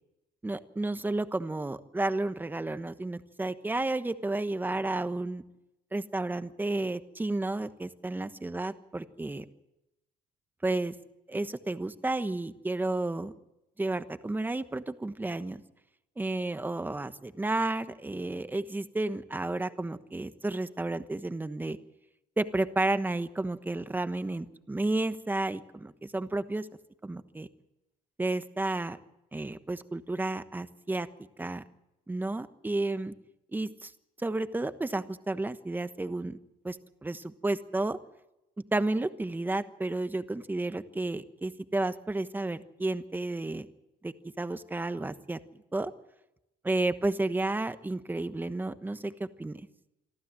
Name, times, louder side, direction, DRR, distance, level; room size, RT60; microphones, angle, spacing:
voice 1, 0.4-5.4 5.9-9.4 10.6-10.9 11.3-13.3 13.8-15.6 16.2-21.8 22.4-26.7 27.0-27.5 28.2-29.0 29.3-31.1 31.4-31.6 32.1-33.1 33.5-33.9 34.2-36.4 36.6-38.0 38.7-43.7 44.0-45.4 45.7-45.9 46.6-49.6, right 2 dB, 10° right, 11 dB, 1.1 m, -32 dB
25.0 x 13.5 x 7.7 m, 0.93 s
cardioid pair, 110°, 17 cm